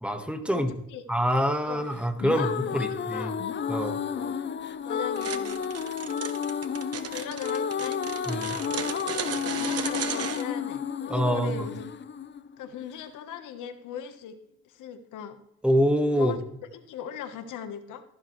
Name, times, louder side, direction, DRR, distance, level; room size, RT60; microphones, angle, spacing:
voice 1, 0.0-0.7 1.1-3.3 3.7-4.0 8.3-8.6 11.1-11.7 15.6-16.3, equal, 5° right, 6 dB, 1.5 m, -25 dB
sound 1, 2.0-13.0, left 7 dB, 40° left, 0.6 m, -31 dB
voice 2, 2.2-3.4 4.1-4.4 4.8-5.7 7.1-8.0 9.4-11.9 12.6-14.4 14.6-15.4 16.1-16.4 16.7-18.0, left 8 dB, 90° left, 9 dB, 1.3 m, -39 dB
sound 2, 5.2-10.4, right 8 dB, 55° right, 1.1 m, -35 dB
14.0 x 10.5 x 3.2 m, 0.76 s
cardioid pair, 90°, 30 cm